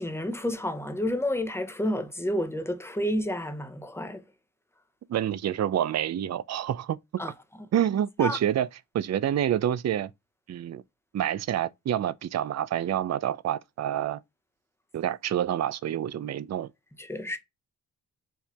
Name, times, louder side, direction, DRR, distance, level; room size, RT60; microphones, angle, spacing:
voice 1, 0.0-4.2 7.2-7.3 8.2-8.4 17.0-17.4, left 1 dB, 5° left, 0.8 m, -30 dB
voice 2, 5.1-7.2 7.7-8.7 8.9-10.1 10.5-10.8 11.1-14.2 14.9-16.7, right 10 dB, 50° right, 0.4 m, -27 dB
4.7 x 2.7 x 3.3 m
cardioid pair, 65°, 36 cm